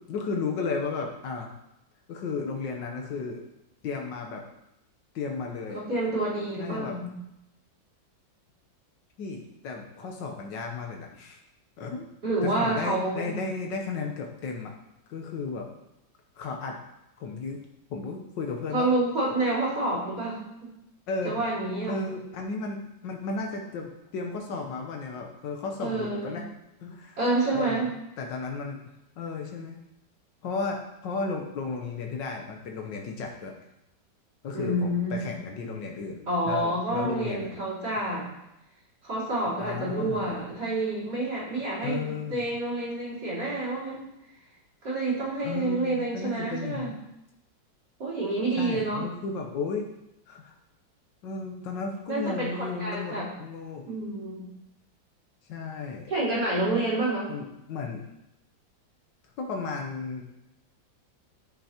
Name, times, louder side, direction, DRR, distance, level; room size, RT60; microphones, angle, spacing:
voice 1, 0.1-1.5 2.1-3.4 3.8-4.5 5.1-5.8 6.6-7.0 9.2-11.4 11.8-12.1 12.4-14.7 15.1-15.7 16.4-16.8 17.2-17.6 17.9-18.9 21.1-21.4 21.9-26.4 26.8-27.2 27.5-28.8 29.2-29.8 30.4-33.5 34.4-37.6 39.6-40.5 41.8-42.4 45.4-47.0 48.6-49.8 50.3-50.5 51.2-53.9 55.5-56.1 57.3-58.1 59.4-60.2, left 4 dB, 75° left, 2 dB, 1.5 m, -34 dB
voice 2, 5.7-7.1 12.2-13.3 18.7-20.7 21.2-22.0 25.8-26.4 27.2-27.9 34.5-35.3 36.3-38.3 39.0-44.0 44.8-46.9 48.0-49.0 52.1-53.3 53.9-54.5 56.1-57.3, right 2 dB, 60° right, -7 dB, 4.2 m, -28 dB
12.5 x 5.5 x 2.9 m, 0.87 s
omnidirectional pair, 2.0 m